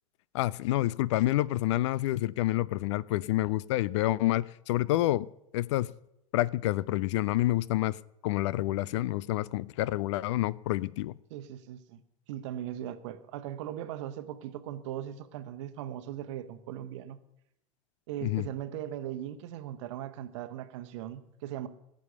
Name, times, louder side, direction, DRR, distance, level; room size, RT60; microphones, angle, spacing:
voice 1, 0.3-5.9 6.3-11.2 18.2-18.5, left 16 dB, 55° left, 0.4 m, -28 dB
voice 2, 11.3-12.0 12.3-17.2 18.1-21.7, right 11 dB, 55° right, 1.0 m, -39 dB
17.0 x 7.6 x 6.8 m
figure-of-eight pair, 90°, 18 cm